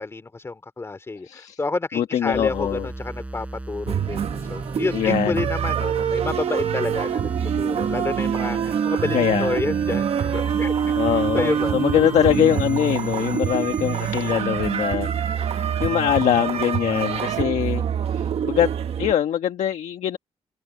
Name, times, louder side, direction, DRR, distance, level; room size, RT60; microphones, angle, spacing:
voice 1, 0.0-7.3 7.6-11.0 11.3-11.8 16.9-17.3, left 3 dB, 20° left, 2.6 m, -29 dB
voice 2, 1.2-1.6 1.9-2.9 4.9-5.5 9.1-9.5 11.0-17.8 18.4-18.7 19.0-20.2, left 10 dB, 75° left, 1.4 m, -22 dB
sound 1, 2.3-14.3, right 2 dB, 10° right, 5.7 m, -38 dB
sound 2, 3.8-19.1, right 8 dB, 55° right, 1.2 m, -25 dB
wide cardioid pair, 145°, 12 cm